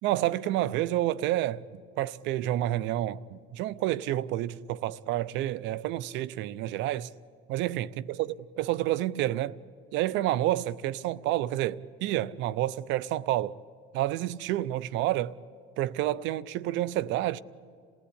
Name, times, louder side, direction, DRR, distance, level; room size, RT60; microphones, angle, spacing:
voice 1, 0.0-7.1 7.5-9.6 9.9-13.6 13.9-15.4 15.8-17.4, right 14 dB, 70° right, 0.7 m, -29 dB
27.5 x 17.5 x 9.9 m
supercardioid pair, 105°, 20 cm